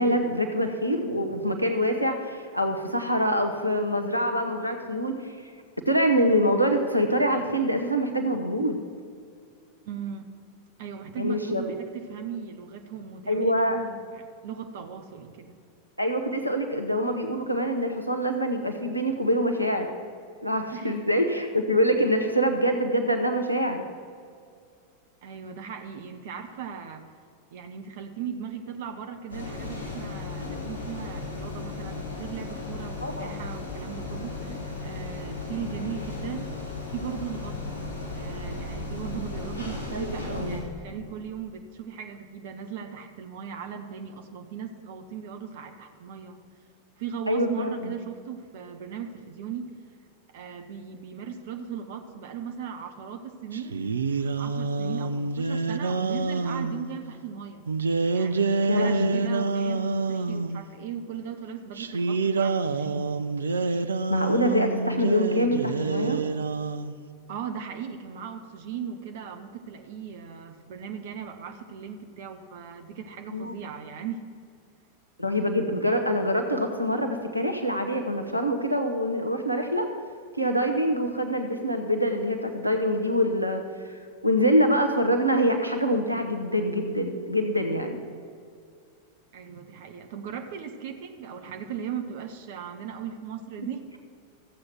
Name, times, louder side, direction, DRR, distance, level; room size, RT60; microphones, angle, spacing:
voice 1, 0.0-5.2 5.9-8.8 11.2-11.6 13.3-13.8 16.0-19.9 20.4-23.8 33.0-33.3 39.9-40.6 47.3-47.9 58.7-59.1 64.1-66.2 73.3-73.5 75.2-79.9 80.4-83.6 84.2-88.0, equal, 90° right, 4 dB, 0.9 m, -25 dB
voice 2, 9.8-10.3 10.8-15.6 20.7-21.1 25.2-27.1 27.5-36.5 36.9-37.7 38.1-46.4 47.0-49.7 50.3-57.6 58.1-63.1 67.3-74.2 89.3-93.8, right 7 dB, 55° right, 6 dB, 0.9 m, -38 dB
sound 1, 29.3-40.6, left 3 dB, 70° left, 3.0 m, -35 dB
sound 2, 53.5-56.8 57.7-60.6 61.8-67.0, right 4 dB, 70° right, 0.5 m, -27 dB
14.0 x 7.8 x 6.0 m, 2.3 s
figure-of-eight pair, 90°, 0 cm